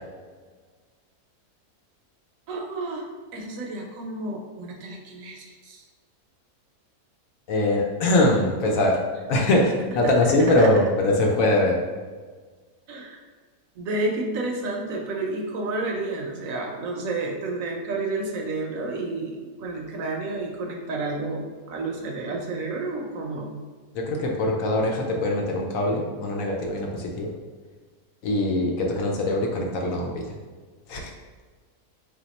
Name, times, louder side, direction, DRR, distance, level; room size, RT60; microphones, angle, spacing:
voice 1, 2.5-3.1 3.3-5.8 10.0-10.1 10.6-10.7 12.9-13.2 13.8-23.5, right 2 dB, 70° right, 1 dB, 0.9 m, -30 dB
voice 2, 7.5-9.0 9.3-11.8 23.9-27.3 28.2-30.3 30.9-31.1, left 1 dB, 70° left, 0 dB, 0.9 m, -22 dB
3.2 x 2.8 x 4.0 m, 1.5 s
omnidirectional pair, 1.6 m